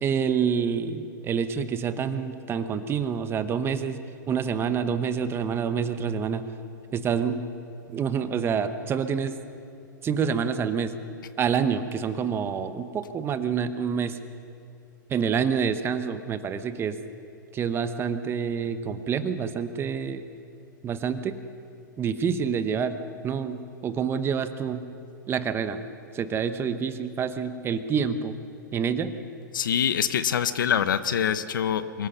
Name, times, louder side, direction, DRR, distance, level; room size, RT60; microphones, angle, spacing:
voice 1, 0.0-4.0 4.3-6.4 6.9-7.4 7.9-9.4 10.0-10.9 11.4-14.2 15.1-17.0 17.5-20.2 20.8-21.4 22.0-23.0 23.2-24.8 25.3-25.8 26.1-28.4 28.7-29.1, right 6 dB, 20° right, 10 dB, 1.1 m, -27 dB
voice 2, 29.5-32.1, left 8 dB, 75° left, 13 dB, 1.0 m, -25 dB
24.0 x 16.5 x 6.7 m, 2.6 s
hypercardioid pair, 125°, 11 cm